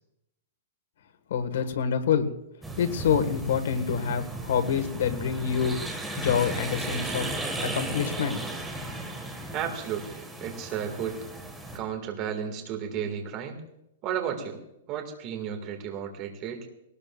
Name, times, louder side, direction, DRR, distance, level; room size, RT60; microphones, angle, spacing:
voice 1, 1.3-2.3 2.8-8.4, left 7 dB, 65° left, 9 dB, 1.6 m, -27 dB
sound 1, 2.6-11.8, right 1 dB, 5° right, 1.7 m, -35 dB
voice 2, 9.5-11.2 11.7-13.6 14.0-14.6 14.9-16.7, right 8 dB, 25° right, 4 dB, 2.0 m, -33 dB
20.5 x 18.5 x 2.5 m, 0.83 s
hypercardioid pair, 170°, 0 cm